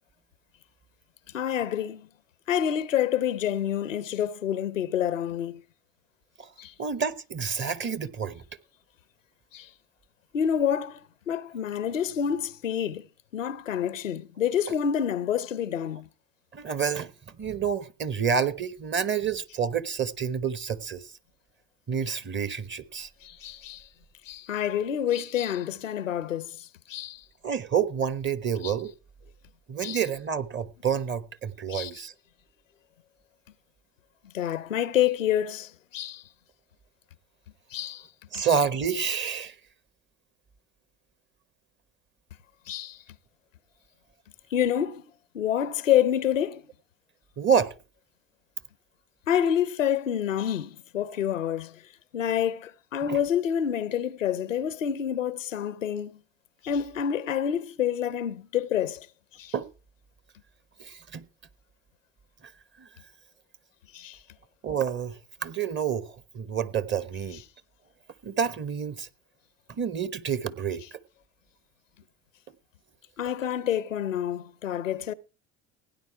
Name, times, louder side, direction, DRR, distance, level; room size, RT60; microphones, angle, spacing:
voice 1, 1.3-2.1 2.5-5.6 6.6-6.7 9.5-9.7 10.3-11.0 11.3-13.1 13.3-16.1 23.2-23.9 24.3-27.2 28.6-28.7 29.8-30.0 31.7-31.9 34.3-36.2 37.7-38.1 38.3-38.4 42.7-43.0 44.5-46.6 49.3-51.8 52.1-56.2 56.6-59.1 59.4-59.5 63.9-64.2 73.2-75.1, left 9 dB, 85° left, 0.7 m, -28 dB
voice 2, 6.8-8.4 16.5-17.1 17.4-21.1 21.9-23.1 27.4-28.9 29.7-32.1 38.3-39.6 47.4-47.7 53.1-53.2 59.5-59.7 60.8-61.2 62.8-62.9 64.6-67.4 68.2-69.1 69.7-70.8, right 7 dB, 30° right, 1.0 m, -28 dB
16.5 x 9.6 x 4.6 m
figure-of-eight pair, 65°, 37 cm